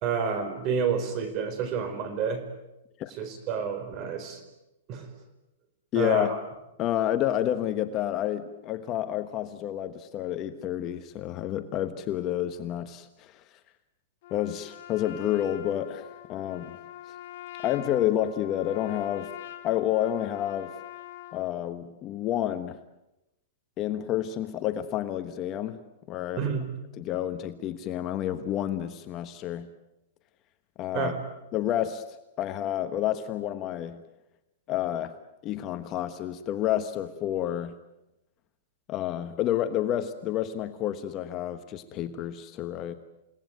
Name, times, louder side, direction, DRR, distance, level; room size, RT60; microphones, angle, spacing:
voice 1, 0.0-2.5 3.2-4.4 4.9-5.1 5.9-6.4 26.4-26.7 30.9-31.2, right 6 dB, 30° right, 10 dB, 4.5 m, -29 dB
voice 2, 5.9-6.3 6.8-13.4 14.3-16.8 17.6-19.3 19.6-20.7 21.3-22.8 23.8-25.8 26.1-26.4 27.0-29.7 30.8-31.1 31.5-32.0 32.4-34.0 34.7-35.1 35.4-37.7 38.9-42.9, left 12 dB, 25° left, 9 dB, 1.2 m, -29 dB
Trumpet, 14.2-21.5, left 13 dB, 50° left, 3.7 m, -44 dB
29.5 x 18.0 x 9.4 m, 0.92 s
supercardioid pair, 165°, 0 cm